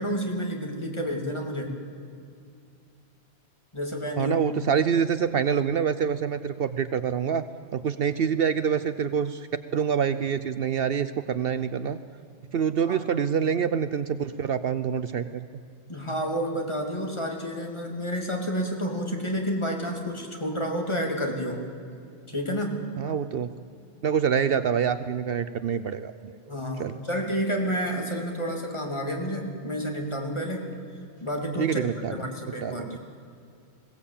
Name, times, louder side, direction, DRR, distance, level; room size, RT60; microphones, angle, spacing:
voice 1, 0.0-1.8 3.7-4.4 12.8-13.0 15.9-21.6 22.3-22.8 26.5-30.6 31.2-31.8 32.1-33.0, equal, 25° left, 0 dB, 2.8 m, -30 dB
voice 2, 4.2-7.4 7.7-9.5 9.7-12.0 12.5-15.5 23.0-23.5 24.0-26.4 26.8-26.9 31.6-32.2 32.6-33.0, right 7 dB, 65° right, 13 dB, 0.8 m, -26 dB
21.0 x 17.5 x 8.6 m, 2.5 s
omnidirectional pair, 1.1 m